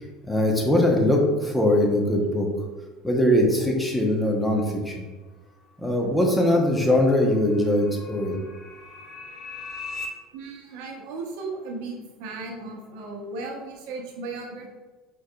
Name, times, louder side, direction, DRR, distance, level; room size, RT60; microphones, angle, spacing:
voice 1, 0.3-2.5 3.0-5.1 5.8-8.4, left 1 dB, 10° left, 0 dB, 0.9 m, -21 dB
sound 1, 5.8-10.1, left 4 dB, 45° left, 0.7 m, -41 dB
voice 2, 10.3-14.7, right 3 dB, 70° right, 1 dB, 0.8 m, -36 dB
4.4 x 3.0 x 2.3 m, 1.3 s
hypercardioid pair, 80°, 0 cm